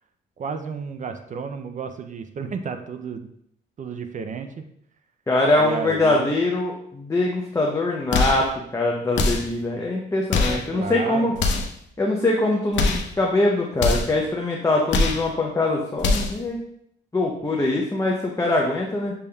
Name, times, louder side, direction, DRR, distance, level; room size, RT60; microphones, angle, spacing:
voice 1, 0.4-3.3 3.8-4.7 5.6-6.3 10.5-11.4, right 5 dB, 40° right, 7 dB, 0.4 m, -32 dB
voice 2, 5.3-8.5 8.7-11.3 12.0-16.6 17.1-19.1, left 2 dB, 15° left, -1 dB, 0.6 m, -23 dB
sound 1, 8.1-8.5 9.1-9.6 10.3-10.7 11.3-11.8 12.7-13.1 13.8-14.2 14.9-15.3 16.0-16.4, left 3 dB, 65° left, 0.7 m, -22 dB
6.8 x 3.4 x 2.3 m, 0.70 s
cardioid pair, 90°, 20 cm